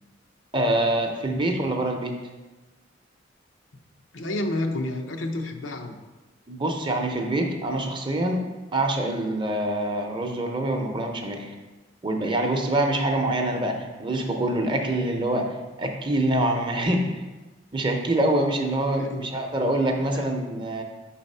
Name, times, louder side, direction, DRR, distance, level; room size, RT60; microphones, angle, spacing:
voice 1, 0.5-2.2 6.5-8.5 8.7-11.5 12.0-17.2 17.7-20.8, right 1 dB, 25° right, 3 dB, 0.7 m, -25 dB
voice 2, 4.1-6.0 13.5-13.8 19.0-19.3 20.1-20.2, left 1 dB, 85° left, 4 dB, 0.7 m, -30 dB
5.5 x 4.1 x 5.4 m, 1.2 s
head